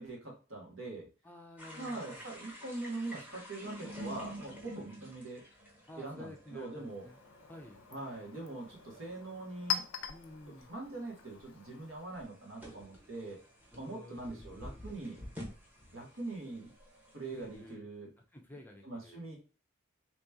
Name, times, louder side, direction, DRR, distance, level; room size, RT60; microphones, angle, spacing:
voice 1, 0.0-1.1 1.8-5.4 6.0-7.1 7.9-9.8 10.7-13.4 13.8-15.2 15.9-16.7 17.1-18.1 18.8-19.4, right 2 dB, 80° right, -1 dB, 1.5 m, -42 dB
voice 2, 1.2-2.2 5.9-7.2 7.5-7.8 10.1-10.7 13.7-14.9 17.3-17.9 18.2-19.2, left 1 dB, 10° left, 3 dB, 0.5 m, -52 dB
sound 1, 1.6-17.8, equal, 10° right, 0.9 m, -50 dB
Chink clink, 6.8-12.3, left 8 dB, 85° left, 0.5 m, -43 dB
3.0 x 3.0 x 3.5 m, 0.35 s
head